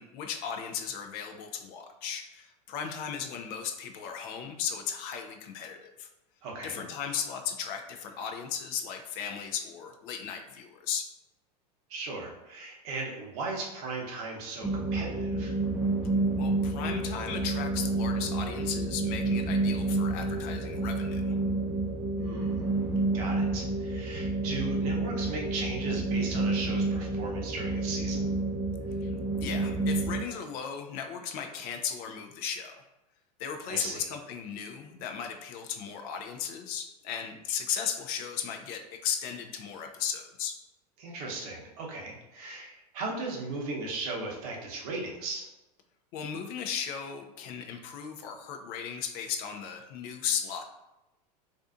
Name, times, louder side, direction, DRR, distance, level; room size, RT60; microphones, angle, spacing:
voice 1, 0.0-6.1 6.6-11.1 16.3-21.3 29.0-32.8 33.4-40.6 46.1-50.6, left 7 dB, 45° left, 5 dB, 0.4 m, -36 dB
voice 2, 6.4-6.8 11.9-15.6 22.1-22.7 23.1-28.3 33.7-34.0 41.0-45.5, right 3 dB, 65° right, -1 dB, 0.8 m, -37 dB
sound 1, 14.6-30.2, right 2 dB, 10° right, 0.5 m, -29 dB
2.5 x 2.4 x 2.4 m, 0.99 s
hypercardioid pair, 95°, 21 cm